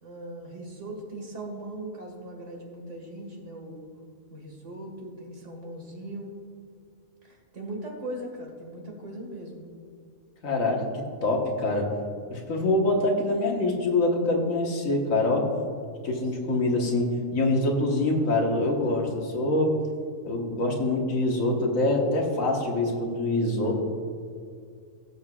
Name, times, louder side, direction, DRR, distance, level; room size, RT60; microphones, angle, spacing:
voice 1, 0.0-3.8 4.3-6.3 7.2-9.7 16.2-16.8 23.6-23.8, right 1 dB, 65° right, 0 dB, 2.3 m, -39 dB
voice 2, 10.4-10.8 11.2-11.9 12.3-15.5 16.0-19.8 20.2-23.8, left 2 dB, 80° left, 0 dB, 1.8 m, -25 dB
16.5 x 7.8 x 2.4 m, 2.3 s
omnidirectional pair, 1.4 m